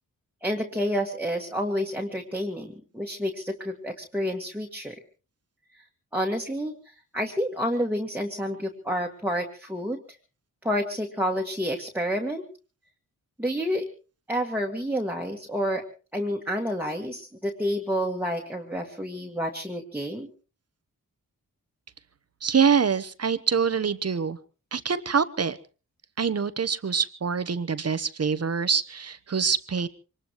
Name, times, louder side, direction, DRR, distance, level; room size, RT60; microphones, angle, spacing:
voice 1, 0.4-5.0 5.7-5.8 6.1-10.0 10.6-12.4 13.4-13.9 14.3-15.8 16.1-20.3, equal, 5° right, 0 dB, 2.0 m, -29 dB
voice 2, 22.4-24.4 24.7-25.6 26.2-29.9, right 6 dB, 45° right, 14 dB, 1.0 m, -25 dB
24.0 x 20.0 x 3.0 m, 0.35 s
cardioid pair, 65°, 35 cm